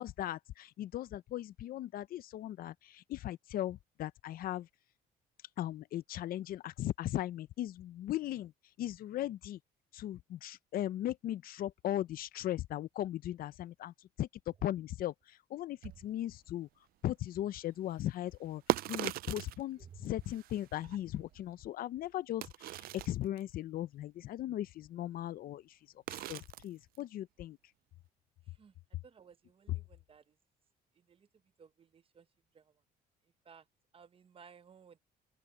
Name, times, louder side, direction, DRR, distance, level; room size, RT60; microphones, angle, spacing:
voice 1, 0.0-4.7 5.6-8.5 8.8-9.6 9.9-16.7 17.0-18.6 18.9-25.8 26.1-27.6, left 13 dB, 60° left, 0.6 m, -38 dB
sound 1, 15.8-16.1 18.2-19.6 20.1-21.6 22.0-22.1 22.4-23.4 26.1-26.7 26.9-27.0, right 15 dB, 60° right, 0.4 m, -38 dB
voice 2, 19.8-20.2 28.4-28.8 29.0-30.4 30.9-32.3 32.5-32.8 33.2-33.7 33.9-35.0, right 7 dB, 35° right, 0.8 m, -58 dB
cardioid pair, 110°, 17 cm